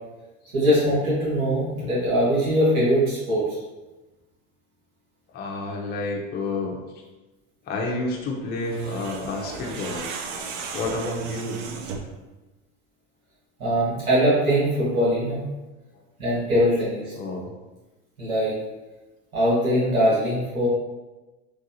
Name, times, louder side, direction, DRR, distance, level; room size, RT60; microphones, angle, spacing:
voice 1, 0.5-3.6 13.6-15.4 16.2-17.1 18.2-18.5 19.3-20.7, equal, 85° right, -9 dB, 1.5 m, -21 dB
voice 2, 5.3-6.7 7.7-10.1 10.7-11.6 17.1-17.5, left 2 dB, 25° left, -1 dB, 0.5 m, -29 dB
sound 1, 8.6-12.2, right 5 dB, 65° right, 0.6 m, -36 dB
3.1 x 2.3 x 2.7 m, 1.1 s
hypercardioid pair, 100°, 40 cm